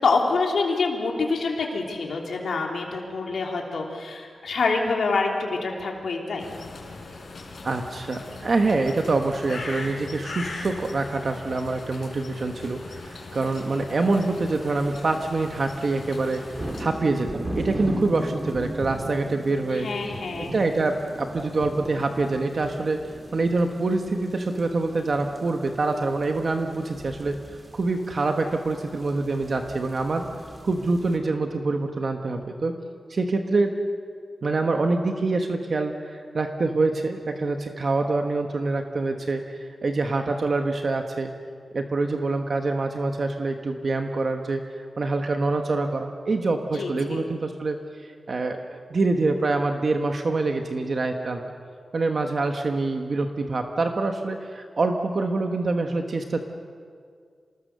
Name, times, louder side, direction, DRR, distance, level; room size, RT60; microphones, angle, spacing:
voice 1, 0.0-6.4 19.7-20.5 46.7-47.2, left 4 dB, 80° left, 0 dB, 3.3 m, -26 dB
sound 1, 6.4-16.8, left 3 dB, 60° left, 4.6 m, -39 dB
voice 2, 7.6-19.9 20.4-23.0 23.3-27.4 27.7-30.2 30.6-32.7 33.1-33.7 34.4-41.3 41.7-44.7 45.0-47.8 48.0-51.4 51.9-56.5, right 3 dB, 50° right, 4 dB, 1.3 m, -25 dB
sound 2, 14.1-14.4 14.8-15.1 15.4-31.2, right 1 dB, 30° right, 2.6 m, -38 dB
26.5 x 19.5 x 6.8 m, 2.1 s
wide cardioid pair, 110°, 0 cm